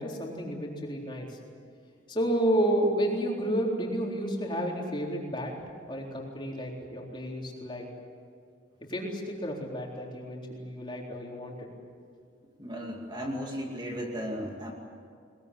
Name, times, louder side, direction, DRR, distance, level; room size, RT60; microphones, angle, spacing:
voice 1, 0.0-1.4 2.1-5.5 5.9-7.8 8.9-11.7, right 1 dB, 25° left, -1 dB, 4.0 m, -31 dB
voice 2, 12.6-14.7, equal, 25° right, 0 dB, 2.4 m, -35 dB
21.5 x 21.5 x 9.8 m, 2.2 s
head